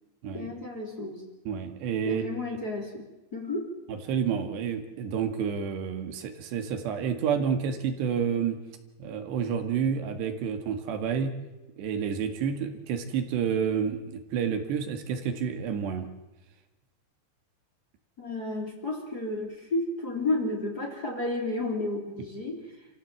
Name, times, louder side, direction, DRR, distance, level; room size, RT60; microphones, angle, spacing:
voice 1, 0.3-1.2 2.0-3.1 3.3-3.7 18.2-22.9, left 2 dB, 25° left, 1 dB, 3.5 m, -32 dB
voice 2, 1.5-2.2 3.9-8.6 9.0-11.3 11.8-16.1, right 7 dB, 80° right, 6 dB, 4.0 m, -29 dB
28.5 x 16.0 x 7.8 m, 1.1 s
omnidirectional pair, 4.9 m